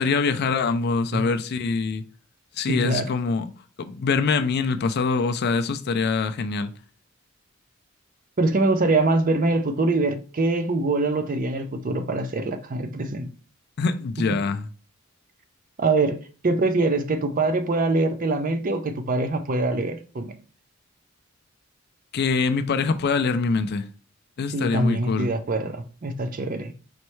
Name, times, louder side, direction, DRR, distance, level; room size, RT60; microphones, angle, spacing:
voice 1, 0.0-2.0 2.6-3.4 3.8-6.7 13.8-14.7 22.1-23.8 24.4-25.3, left 4 dB, 50° left, 0.4 m, -24 dB
voice 2, 2.7-3.1 8.4-13.3 15.8-20.3 24.5-26.7, right 2 dB, 40° right, 0.5 m, -24 dB
4.3 x 3.2 x 3.1 m
head